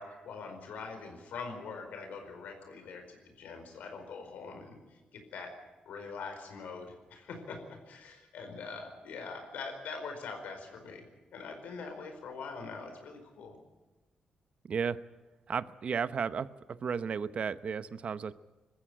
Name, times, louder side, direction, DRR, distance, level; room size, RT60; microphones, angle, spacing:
voice 1, 0.0-4.8 5.1-5.5 5.9-7.6 7.9-11.0 11.3-13.6, left 4 dB, 85° left, 5 dB, 4.8 m, -43 dB
voice 2, 14.6-15.0 15.5-18.3, right 6 dB, 50° right, 14 dB, 0.8 m, -34 dB
21.0 x 14.5 x 10.0 m, 1.2 s
cardioid pair, 110°, 3 cm